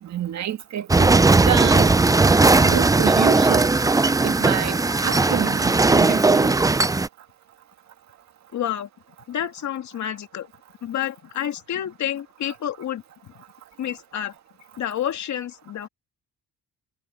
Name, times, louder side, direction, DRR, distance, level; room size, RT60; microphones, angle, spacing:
voice 1, 0.0-1.9 2.5-3.8 4.2-6.6, right 10 dB, 65° right, 2.1 m, -27 dB
sound 1, 0.9-7.1, right 3 dB, 10° right, 0.5 m, -17 dB
voice 2, 8.5-8.9 9.3-10.5 10.8-13.4 13.8-14.3 14.8-15.9, left 10 dB, 70° left, 2.5 m, -29 dB
cardioid pair, 90°, 30 cm